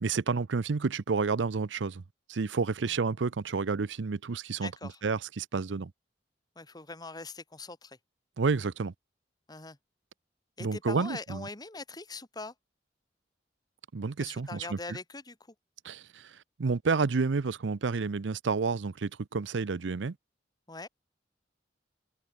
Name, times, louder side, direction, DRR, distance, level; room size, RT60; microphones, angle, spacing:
voice 1, 0.0-2.0 2.3-4.7 5.0-5.9 8.4-8.9 10.6-11.5 13.9-14.8 15.8-20.2, right 4 dB, 90° right, 0.6 m, -30 dB
voice 2, 4.6-5.0 6.6-8.0 9.5-9.8 10.6-12.5 14.2-15.4 20.7-20.9, left 3 dB, 20° left, 1.7 m, -42 dB
head